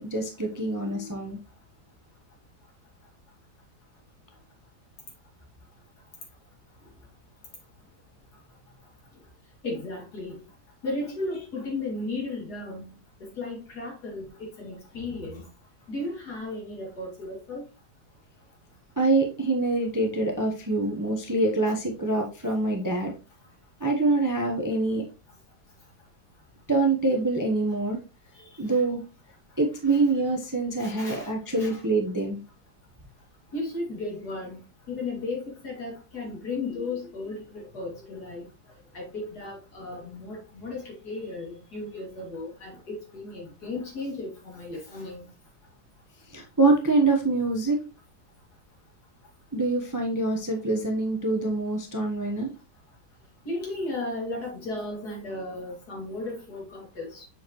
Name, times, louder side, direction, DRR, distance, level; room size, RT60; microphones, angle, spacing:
voice 1, 0.0-1.4 19.0-23.1 23.8-25.0 26.7-28.0 28.6-29.0 29.6-32.4 46.3-47.8 49.5-52.5, right 2 dB, 15° right, 0.7 m, -25 dB
voice 2, 0.5-1.1 9.6-10.4 10.8-15.4 15.9-17.6 28.7-28.8 29.9-30.0 30.8-31.8 33.5-38.4 38.9-45.3 53.5-57.2, left 2 dB, 65° left, 3.0 m, -35 dB
7.0 x 4.8 x 3.0 m
omnidirectional pair, 1.8 m